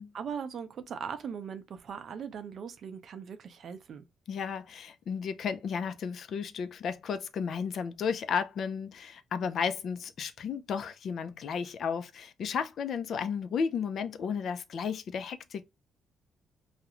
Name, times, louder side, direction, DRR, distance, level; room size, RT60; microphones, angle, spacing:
voice 1, 0.1-4.0, right 7 dB, 60° right, 0.5 m, -39 dB
voice 2, 4.3-15.6, left 6 dB, 60° left, 0.3 m, -33 dB
2.4 x 2.0 x 2.9 m
cardioid pair, 90°, 0 cm